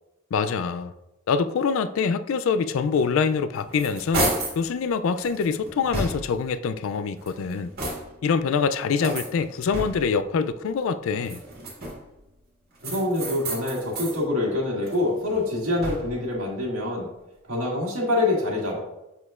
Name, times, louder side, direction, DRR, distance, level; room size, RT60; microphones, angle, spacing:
voice 1, 0.3-0.9 1.3-7.7 8.2-11.4, left 5 dB, 70° left, 0.3 m, -25 dB
sound 1, 3.3-4.6 5.2-6.5 7.1-8.3 9.0-10.2 11.1-12.2 12.8-14.2 14.6-16.3, right 1 dB, 50° right, 1.6 m, -32 dB
voice 2, 12.8-17.1 17.5-18.8, left 2 dB, 90° right, 1.9 m, -25 dB
6.9 x 6.2 x 2.4 m
head